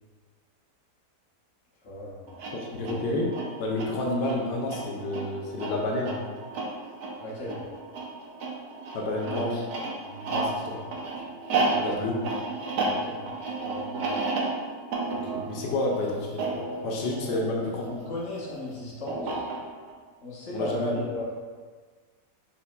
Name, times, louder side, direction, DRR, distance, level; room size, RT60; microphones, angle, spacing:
voice 1, 1.8-2.3 7.2-7.6 10.0-10.4 11.6-11.8 12.8-13.3 13.6-14.2 17.3-19.5 20.2-21.4, left 1 dB, 45° left, -6 dB, 1.3 m, -36 dB
sound 1, 2.3-18.0 19.1-19.9, right 3 dB, 70° right, 1.2 m, -32 dB
voice 2, 2.5-3.3 3.6-6.2 8.9-9.6 10.3-10.8 11.2-11.3 11.8-12.2 15.3-17.8 20.5-20.9, left 2 dB, 90° left, -1 dB, 1.3 m, -30 dB
5.8 x 3.6 x 2.2 m, 1.5 s
omnidirectional pair, 1.8 m